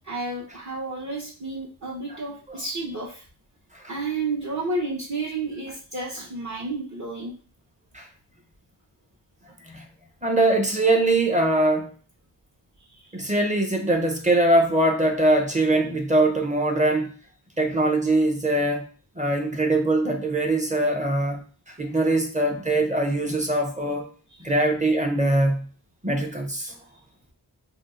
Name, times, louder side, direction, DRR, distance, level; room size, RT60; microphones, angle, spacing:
voice 1, 0.1-3.2 3.9-7.3, right 3 dB, 40° right, -6 dB, 0.9 m, -31 dB
voice 2, 10.2-11.9 13.1-17.1 17.6-18.8 19.2-21.4 21.8-24.1 24.4-25.6 26.0-26.7, right 2 dB, 15° right, 2 dB, 0.6 m, -22 dB
2.7 x 2.0 x 3.7 m, 0.39 s
wide cardioid pair, 50°, 44 cm